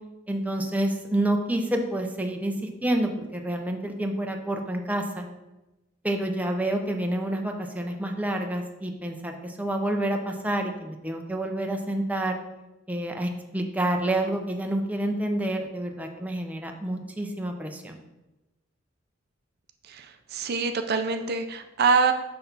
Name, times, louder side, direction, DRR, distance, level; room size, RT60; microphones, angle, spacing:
voice 1, 0.3-5.3 6.0-12.4 12.9-18.0, right 1 dB, 10° right, 3 dB, 0.6 m, -28 dB
voice 2, 19.9-22.1, right 5 dB, 55° right, 7 dB, 0.5 m, -25 dB
6.3 x 5.6 x 4.0 m, 1.0 s
head